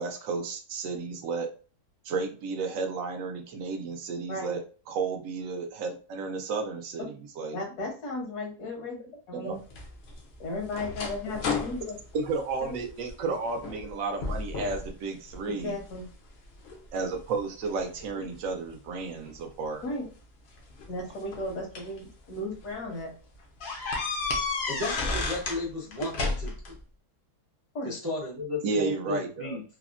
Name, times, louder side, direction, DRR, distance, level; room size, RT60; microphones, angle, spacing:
voice 1, 0.0-1.5 2.0-4.6 4.9-7.6 9.3-9.6 12.1-15.8 16.9-19.8 28.6-29.6, right 4 dB, 65° right, 4 dB, 0.9 m, -32 dB
voice 2, 7.5-9.6 10.4-12.0 12.6-12.8 15.5-16.1 19.8-20.1 20.9-23.1 27.7-27.9, left 2 dB, 75° left, 1 dB, 1.5 m, -35 dB
sound 1, 9.7-13.1 13.6-13.9 14.2-14.9 15.3-16.0 16.6-18.1 19.2-19.4 20.6-22.0 22.5-22.7 23.0-23.1 23.6-25.6 25.9-26.7, left 3 dB, 60° left, 0.7 m, -32 dB
voice 3, 24.7-26.5 27.8-29.6, left 2 dB, 25° right, -5 dB, 0.5 m, -34 dB
3.4 x 2.0 x 2.4 m, 0.37 s
omnidirectional pair, 1.7 m